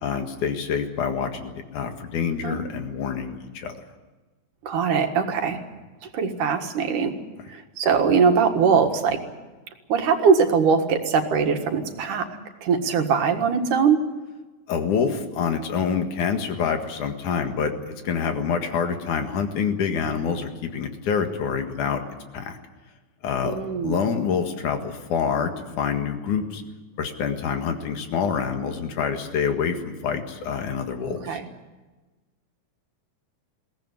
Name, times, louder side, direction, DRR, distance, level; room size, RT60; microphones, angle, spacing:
voice 1, 0.0-3.8 14.7-17.7 18.0-22.0 22.3-22.6 23.2-23.5 23.8-26.6 27.0-31.4, left 6 dB, 85° left, 6 dB, 3.3 m, -26 dB
voice 2, 4.6-5.6 6.1-7.1 7.5-9.2 9.9-12.3 12.6-14.0 23.4-24.0 31.2-31.5, right 6 dB, 90° right, 5 dB, 3.3 m, -21 dB
22.0 x 17.5 x 9.6 m, 1.2 s
omnidirectional pair, 3.5 m